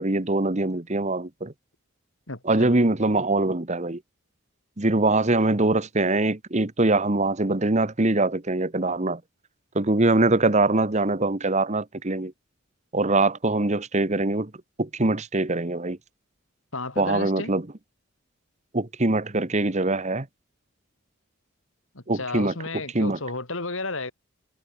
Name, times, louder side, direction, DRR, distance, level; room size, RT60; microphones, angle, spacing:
voice 1, 0.0-1.5 2.4-4.0 4.8-9.2 9.7-12.3 12.9-14.5 14.8-16.0 17.0-17.6 18.7-20.3 22.1-22.5 22.9-23.2, right 2 dB, 35° right, 1.3 m, -23 dB
voice 2, 2.3-2.8 16.7-17.5 21.9-24.1, left 3 dB, 70° left, 3.7 m, -33 dB
head